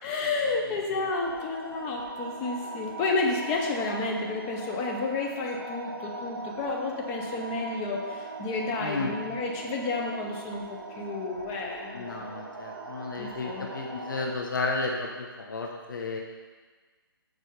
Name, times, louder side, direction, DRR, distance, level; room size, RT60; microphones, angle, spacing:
voice 1, 0.0-12.3 13.2-13.7, left 3 dB, 15° left, 0 dB, 0.8 m, -31 dB
sound 1, 1.1-14.3, right 2 dB, 70° right, 1.8 m, -40 dB
voice 2, 8.8-9.2 11.9-16.2, left 3 dB, 55° left, 0 dB, 1.1 m, -33 dB
6.8 x 4.4 x 6.6 m, 1.4 s
hypercardioid pair, 160°, 12 cm